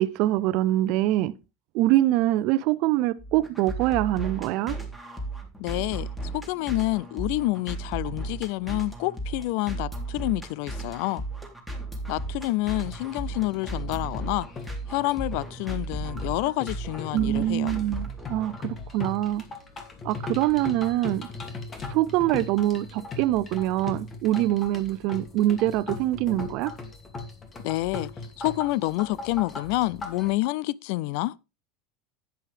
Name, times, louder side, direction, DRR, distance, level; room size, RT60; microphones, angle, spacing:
voice 1, 0.0-1.3 1.7-4.8 17.1-19.4 20.0-21.3 21.9-26.7, right 15 dB, 60° right, 0.7 m, -24 dB
sound 1, 3.2-18.6, right 2 dB, 5° left, 3.4 m, -35 dB
voice 2, 5.6-6.1 6.3-11.2 12.1-14.5 14.9-17.7 27.6-28.1 28.4-31.4, left 19 dB, 65° left, 0.4 m, -28 dB
sound 2, 12.8-30.3, left 3 dB, 30° left, 2.5 m, -39 dB
10.5 x 9.2 x 3.4 m
hypercardioid pair, 95°, 0 cm